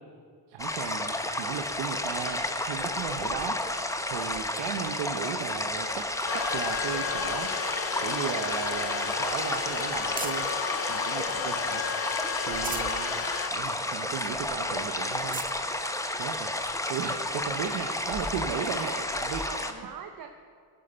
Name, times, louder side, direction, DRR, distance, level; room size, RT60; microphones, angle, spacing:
voice 1, 0.5-3.8 4.1-6.1 6.3-7.5 8.0-10.5 10.9-11.8 12.4-15.4 16.1-16.5 16.9-18.9 19.2-19.4, right 8 dB, 90° right, 4 dB, 0.9 m, -36 dB
sound 1, 0.6-19.7, left 1 dB, 5° left, 0.8 m, -31 dB
sound 2, 6.3-13.5, left 8 dB, 35° left, 0.5 m, -33 dB
sound 3, 8.0-10.6 11.2-11.9 12.3-13.0 13.5-13.6 13.9-14.0 14.6-14.7 15.1-15.6 16.4-16.5 18.3-18.4, right 6 dB, 20° right, 0.4 m, -42 dB
voice 2, 18.5-20.3, right 7 dB, 55° right, 5 dB, 0.8 m, -42 dB
15.5 x 7.8 x 5.5 m, 2.1 s
cardioid pair, 80°, 42 cm